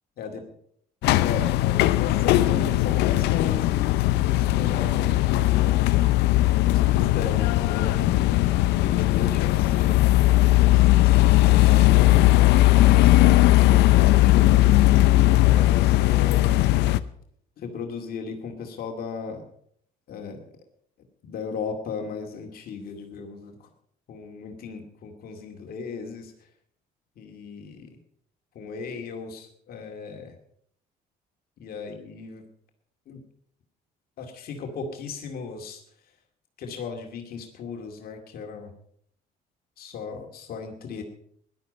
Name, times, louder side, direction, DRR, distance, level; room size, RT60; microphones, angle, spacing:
sound 1, 1.0-17.0, left 17 dB, 85° left, 0.6 m, -19 dB
voice 1, 1.2-6.1 6.6-8.3 8.8-9.9 10.6-16.6 17.6-19.4 20.1-20.4 21.2-23.7 24.1-26.3 27.2-27.9 28.6-30.3 31.6-32.4 33.1-33.2 34.2-35.8 36.6-38.7 39.8-41.0, left 5 dB, 60° left, 2 dB, 2.2 m, -36 dB
16.0 x 11.5 x 5.3 m, 0.67 s
cardioid pair, 110°, 17 cm